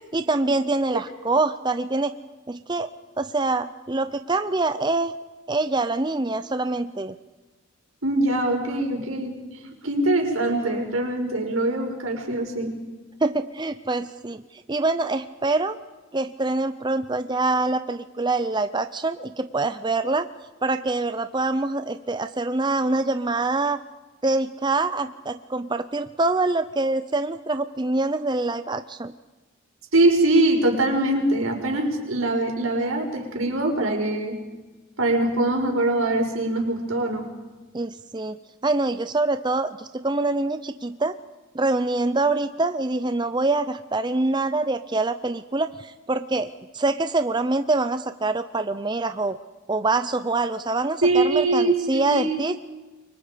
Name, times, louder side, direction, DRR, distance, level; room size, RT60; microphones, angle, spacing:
voice 1, 0.1-2.1 2.5-2.9 3.2-5.1 5.5-7.2 13.2-15.8 16.1-20.3 20.6-23.8 24.2-29.1 37.7-41.1 41.5-49.4 49.7-52.6, right 2 dB, 20° right, 10 dB, 0.6 m, -25 dB
voice 2, 8.0-9.3 9.8-12.7 29.9-34.4 35.0-37.3 51.0-52.4, right 2 dB, 85° right, 2 dB, 5.2 m, -22 dB
29.0 x 24.0 x 5.1 m, 1.2 s
head